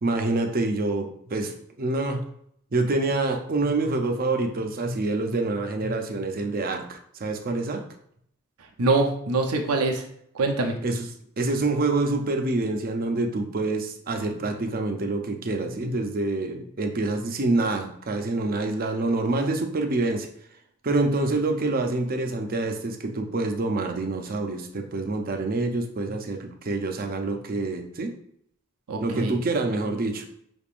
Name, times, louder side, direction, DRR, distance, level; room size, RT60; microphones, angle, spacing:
voice 1, 0.0-1.5 1.8-2.2 2.7-7.8 10.8-11.1 11.4-20.3 20.8-28.1 29.0-30.2, right 2 dB, 40° right, 4 dB, 0.6 m, -26 dB
voice 2, 8.8-10.0 10.3-10.7 28.9-29.4, right 3 dB, 90° right, 3 dB, 0.7 m, -24 dB
5.4 x 3.5 x 2.5 m, 0.68 s
head